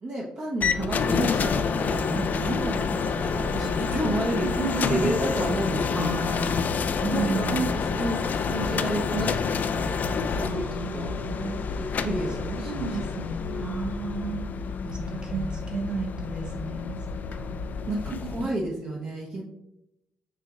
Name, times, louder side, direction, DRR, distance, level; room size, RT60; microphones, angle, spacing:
voice 1, 0.0-4.6 4.9-10.6 10.9-11.1 11.8-13.0 14.8-15.5 17.4-17.5 17.9-19.4, right 1 dB, 45° right, -4 dB, 0.9 m, -32 dB
sound 1, 0.6-18.5, left 5 dB, 50° left, 0.3 m, -28 dB
voice 2, 4.4-5.5 5.9-6.6 7.0-7.6 10.3-11.6 12.4-14.4 15.1-17.0 17.3-17.5 18.1-18.2, right 4 dB, 25° right, 2 dB, 1.4 m, -32 dB
6.4 x 2.9 x 2.4 m, 0.88 s
hypercardioid pair, 45°, 4 cm